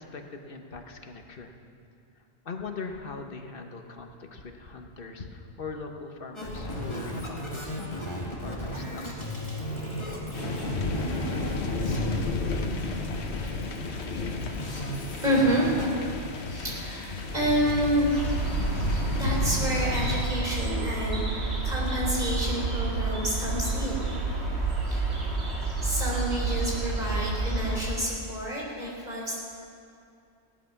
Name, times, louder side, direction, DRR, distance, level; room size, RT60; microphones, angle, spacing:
voice 1, 0.0-1.5 2.4-8.1 8.4-9.2, left 4 dB, 60° left, 4 dB, 1.3 m, -41 dB
sound 1, 6.3-15.9, equal, 25° left, 2.1 m, -35 dB
sound 2, 10.3-20.3, left 3 dB, 90° left, 1.3 m, -32 dB
voice 2, 15.2-16.1 16.5-18.5 18.9-24.4 24.8-25.2 25.8-29.4, equal, 45° right, -4 dB, 3.9 m, -29 dB
sound 3, 18.1-27.8, right 3 dB, 85° right, 2.4 m, -29 dB
16.5 x 11.5 x 5.9 m, 2.4 s
omnidirectional pair, 1.1 m